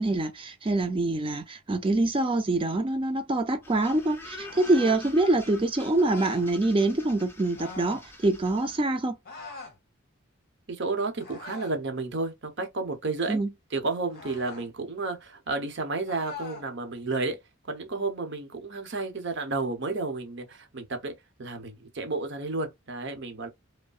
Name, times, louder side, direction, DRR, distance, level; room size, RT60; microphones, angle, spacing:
voice 1, 0.0-9.2 13.3-13.5, right 2 dB, 25° right, 0.4 m, -25 dB
sound 1, 3.6-8.8, left 1 dB, 10° left, 0.7 m, -45 dB
sound 2, 4.4-5.0 6.0-6.5 7.5-8.1 9.2-9.8 11.2-11.8 14.1-14.7 16.1-16.7, left 4 dB, 45° left, 1.6 m, -43 dB
voice 2, 10.7-13.4 13.7-17.4 17.6-21.1 21.4-23.5, right 3 dB, 55° right, 0.9 m, -31 dB
5.3 x 2.2 x 2.4 m
head